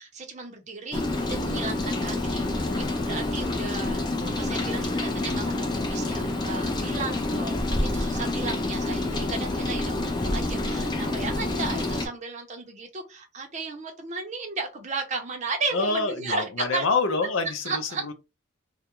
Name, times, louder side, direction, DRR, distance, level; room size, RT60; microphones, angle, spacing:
voice 1, 0.0-16.9 17.6-18.1, right 3 dB, 35° right, 0.6 m, -34 dB
Rain, 0.9-12.1, left 2 dB, 20° left, 0.4 m, -28 dB
voice 2, 15.7-18.1, left 3 dB, 80° left, 0.5 m, -26 dB
2.3 x 2.1 x 2.9 m
head